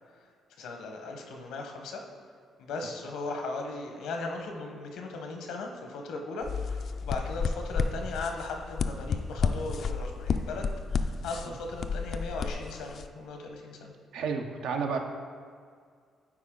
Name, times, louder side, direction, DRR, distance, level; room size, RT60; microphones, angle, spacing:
voice 1, 0.6-2.0 2.6-13.9, left 3 dB, 85° left, 3 dB, 1.0 m, -37 dB
sound 1, 6.4-13.1, left 5 dB, 60° left, 0.3 m, -31 dB
voice 2, 14.1-15.0, right 5 dB, 80° right, 4 dB, 0.7 m, -31 dB
9.6 x 4.3 x 3.7 m, 2.1 s
cardioid pair, 90°, 0 cm